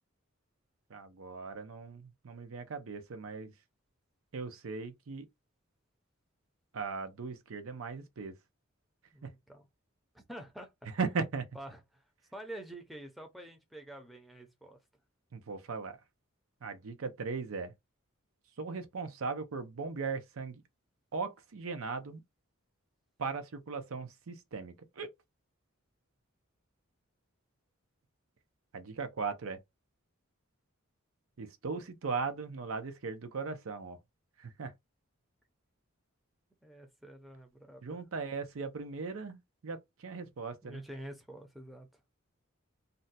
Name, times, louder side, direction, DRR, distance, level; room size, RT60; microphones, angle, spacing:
voice 1, 0.9-3.5 4.3-5.3 6.7-8.3 9.2-9.3 10.9-11.5 15.3-16.0 16.6-17.7 18.6-20.6 21.1-22.2 23.2-25.1 28.7-29.6 31.4-34.0 34.4-34.7 37.8-40.8, right 4 dB, 85° right, 0.6 m, -38 dB
voice 2, 9.1-9.6 10.1-10.7 11.5-12.0 12.3-14.8 36.6-38.0 40.6-41.9, right 1 dB, ahead, 0.5 m, -47 dB
2.6 x 2.2 x 4.0 m
head